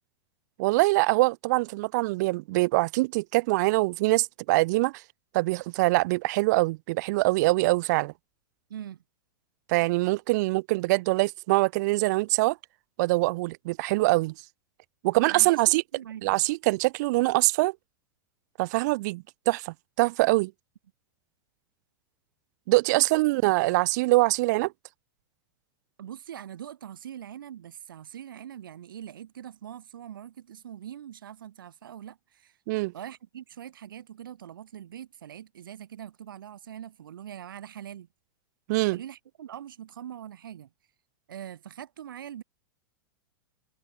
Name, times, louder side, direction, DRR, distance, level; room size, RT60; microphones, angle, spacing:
voice 1, 0.6-4.9 5.3-8.1 9.7-12.6 13.0-14.3 15.0-15.8 16.2-17.7 18.6-20.5 22.7-24.7 32.7-32.9 38.7-39.0, right 22 dB, 55° right, 0.6 m, -24 dB
voice 2, 8.7-9.0 15.3-16.4 22.9-23.1 26.0-32.5 32.9-38.1 38.9-40.7 41.3-42.4, right 10 dB, 85° right, 4.0 m, -42 dB
hypercardioid pair, 125°, 11 cm